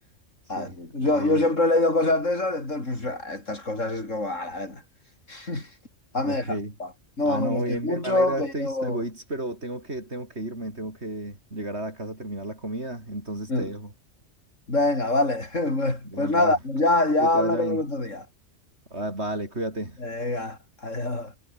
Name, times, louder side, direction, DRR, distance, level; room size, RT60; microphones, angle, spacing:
voice 1, 0.5-4.8 5.3-5.7 6.1-6.9 7.2-9.0 13.5-13.7 14.7-18.2 20.0-21.3, left 2 dB, 85° left, 5.9 m, -25 dB
voice 2, 1.0-1.4 6.2-6.8 7.2-13.9 16.0-16.6 17.2-17.8 18.9-20.0, right 1 dB, 60° right, 6.8 m, -32 dB
omnidirectional pair, 1.3 m